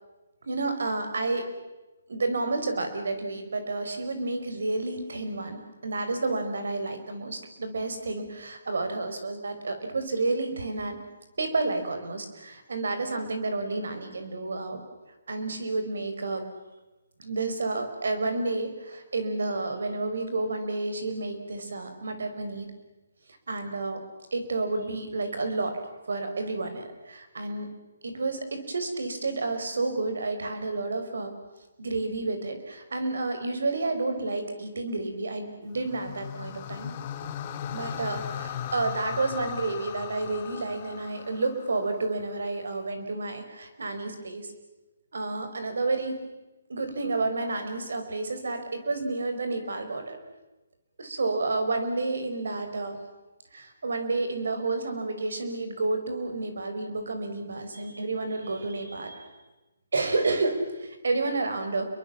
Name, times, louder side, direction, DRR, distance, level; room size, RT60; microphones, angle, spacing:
voice 1, 0.5-1.5 2.1-11.0 11.4-14.8 15.3-16.4 17.2-22.7 23.5-24.0 24.3-25.8 26.1-27.7 28.0-31.3 31.8-36.9 37.7-44.5 45.1-46.2 46.7-50.2 51.0-53.0 53.5-59.3 59.9-61.9, right 3 dB, 75° right, 7 dB, 5.7 m, -30 dB
sound 1, 35.7-42.1, left 9 dB, 35° left, 1.7 m, -37 dB
29.5 x 23.0 x 7.3 m, 1.1 s
hypercardioid pair, 150°, 0 cm